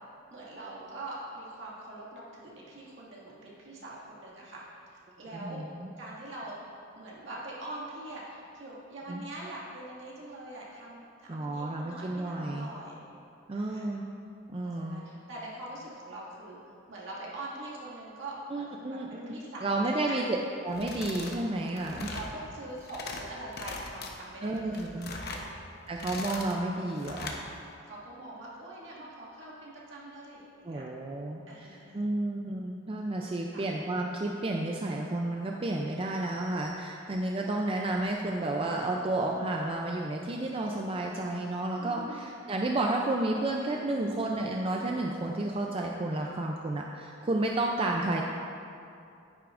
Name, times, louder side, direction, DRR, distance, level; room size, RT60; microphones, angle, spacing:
voice 1, 0.3-4.6 4.9-5.6 6.0-13.0 13.5-14.0 14.6-16.6 16.9-20.2 21.7-25.4 27.9-30.8 31.5-32.0 33.5-33.6 41.8-42.3 46.1-46.4, right 1 dB, 65° right, -6 dB, 2.1 m, -43 dB
voice 2, 5.3-5.9 9.1-9.2 11.3-12.7 13.5-14.1 14.5-15.0 18.5-19.3 19.6-20.4 20.6-22.1 24.4-25.1 25.9-27.3 30.6-31.4 31.7-48.2, right 2 dB, 30° right, 0 dB, 0.4 m, -31 dB
sound 1, 20.7-21.4 21.7-22.3 22.7-23.2 23.5-24.1 24.6-25.5 25.9-26.6 27.0-27.4, left 3 dB, 55° left, 0.8 m, -40 dB
10.0 x 9.6 x 2.5 m, 2.6 s
head